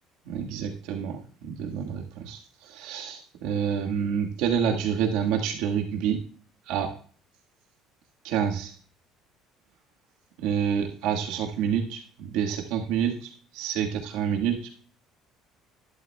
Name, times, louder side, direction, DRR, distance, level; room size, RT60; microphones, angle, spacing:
voice 1, 0.2-6.2 6.7-6.9 8.2-8.7 10.4-14.7, right 8 dB, 75° right, 2 dB, 1.5 m, -28 dB
11.0 x 11.0 x 2.3 m, 0.43 s
cardioid pair, 160°, 0 cm